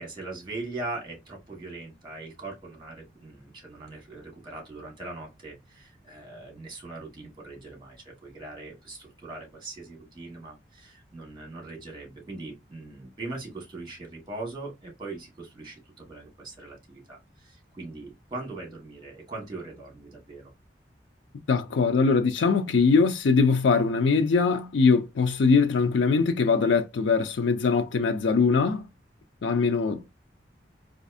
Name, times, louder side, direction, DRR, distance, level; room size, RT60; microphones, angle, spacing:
voice 1, 0.0-20.5, right 2 dB, 25° right, 1.5 m, -40 dB
voice 2, 21.5-28.8 29.4-30.1, left 4 dB, 90° left, 0.4 m, -22 dB
4.0 x 2.5 x 2.5 m
head